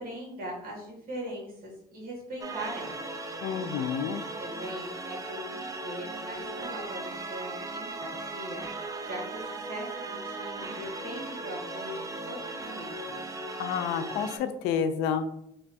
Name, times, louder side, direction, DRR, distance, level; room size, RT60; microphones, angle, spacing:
voice 1, 0.0-3.1 4.4-13.4, equal, 60° right, -2 dB, 1.4 m, -41 dB
sound 1, 2.4-14.4, right 2 dB, 20° right, 0.4 m, -37 dB
voice 2, 3.4-4.2 13.6-15.3, left 7 dB, 90° left, 9 dB, 0.4 m, -29 dB
2.9 x 2.3 x 4.1 m, 0.76 s
cardioid pair, 110°, 17 cm